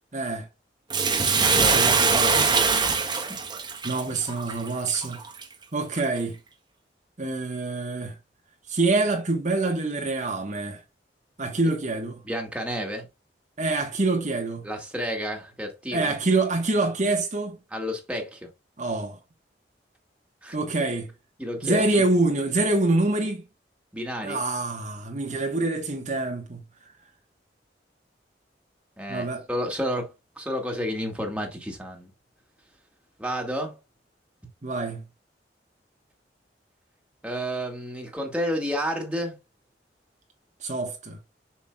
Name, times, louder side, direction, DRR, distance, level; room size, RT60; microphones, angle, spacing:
voice 1, 0.1-0.5 1.6-2.5 3.8-5.3 5.7-6.4 7.2-8.2 8.7-10.8 11.4-12.2 13.6-14.6 15.9-17.6 18.8-19.2 20.5-21.1 21.6-23.4 24.2-26.6 29.1-29.5 34.6-35.0 40.6-41.2, right 2 dB, 45° right, 1.3 m, -26 dB
Bathtub (filling or washing), 0.9-5.4 6.0-6.1, right 5 dB, 25° right, 1.1 m, -22 dB
voice 2, 1.4-1.9 2.8-3.4 12.3-13.1 14.6-16.1 17.7-18.5 20.4-20.6 21.4-21.9 23.9-24.4 29.0-32.1 33.2-33.8 37.2-39.4, equal, 5° right, 1.9 m, -31 dB
7.3 x 6.2 x 2.3 m
head